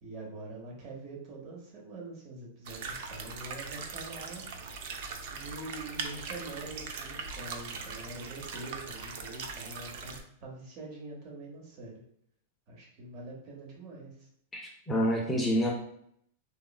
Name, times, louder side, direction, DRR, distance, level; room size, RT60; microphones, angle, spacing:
voice 1, 0.0-4.4 5.3-12.0 12.7-14.3, right 2 dB, 45° right, -1 dB, 0.9 m, -44 dB
sound 1, 2.7-10.2, right 5 dB, 60° right, 0.3 m, -40 dB
voice 2, 14.5-15.7, equal, 15° left, -1 dB, 0.5 m, -28 dB
3.0 x 2.3 x 2.3 m, 0.70 s
hypercardioid pair, 135°, 0 cm